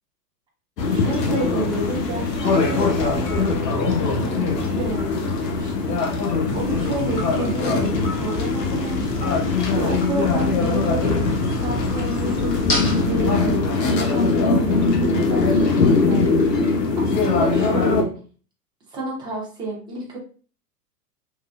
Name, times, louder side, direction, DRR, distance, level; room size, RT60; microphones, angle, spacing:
sound 1, 0.8-18.0, left 3 dB, 75° left, 0.7 m, -21 dB
voice 1, 0.9-5.2 5.5-18.1 18.9-20.2, right 2 dB, 10° right, -4 dB, 0.4 m, -30 dB
sound 2, 6.5-13.0, left 2 dB, 25° left, 0.7 m, -30 dB
3.0 x 2.2 x 2.2 m, 0.39 s
figure-of-eight pair, 95°, 48 cm